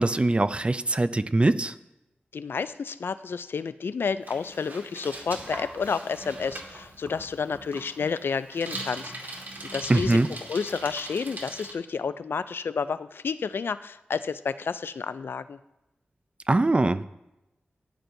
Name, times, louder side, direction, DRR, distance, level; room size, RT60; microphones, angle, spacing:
voice 1, 0.0-1.7 9.9-10.3 16.5-17.0, right 2 dB, 30° right, 13 dB, 0.5 m, -22 dB
voice 2, 2.3-15.6, left 5 dB, 80° left, 14 dB, 0.4 m, -30 dB
Bicycle, 4.2-11.7, right 2 dB, 55° right, 1.9 m, -40 dB
15.0 x 10.5 x 2.7 m, 0.94 s
cardioid pair, 60°, 4 cm